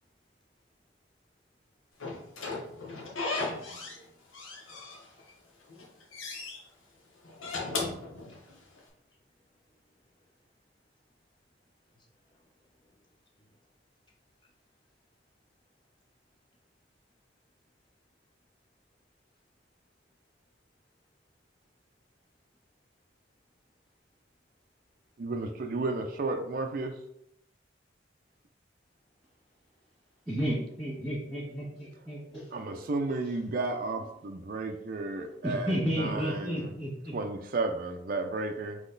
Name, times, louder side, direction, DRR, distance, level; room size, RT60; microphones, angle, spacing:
Slam / Squeak, 2.0-4.0 4.3-5.3 5.7-6.6 7.3-8.8, left 3 dB, 90° left, 0.9 m, -36 dB
voice 1, 3.5-4.3 7.8-10.5 11.9-13.7 14.1-14.2 14.4-14.5, left 1 dB, 25° left, 0 dB, 0.7 m, -68 dB
voice 2, 25.2-27.0 32.5-36.8 37.1-38.8, right 3 dB, 45° right, 4 dB, 0.4 m, -33 dB
voice 3, 30.3-32.5 35.4-37.1, equal, 5° right, -11 dB, 1.5 m, -32 dB
3.9 x 3.0 x 3.9 m, 0.74 s
head